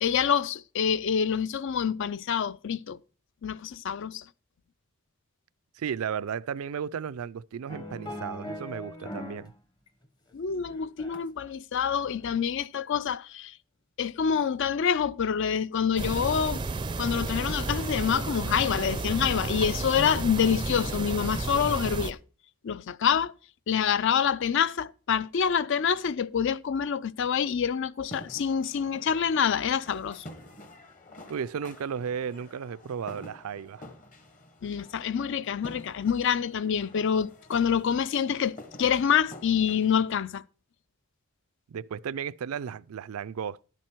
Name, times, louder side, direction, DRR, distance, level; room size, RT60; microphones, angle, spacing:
voice 1, 0.0-3.0 3.4-4.3 10.3-13.5 14.0-16.6 17.0-22.2 22.6-23.3 23.7-30.2 34.6-40.4, left 7 dB, 60° left, 0.4 m, -27 dB
voice 2, 5.7-9.5 31.3-33.8 41.7-43.6, right 7 dB, 85° right, 0.4 m, -34 dB
sound 1, 7.7-9.5 9.9-11.5 11.9-12.2, left 1 dB, 20° left, 0.8 m, -40 dB
sound 2, 16.0-22.1, right 3 dB, 20° right, 0.4 m, -32 dB
sound 3, 28.0-40.2, left 1 dB, 40° left, 1.3 m, -49 dB
11.0 x 7.7 x 4.5 m
head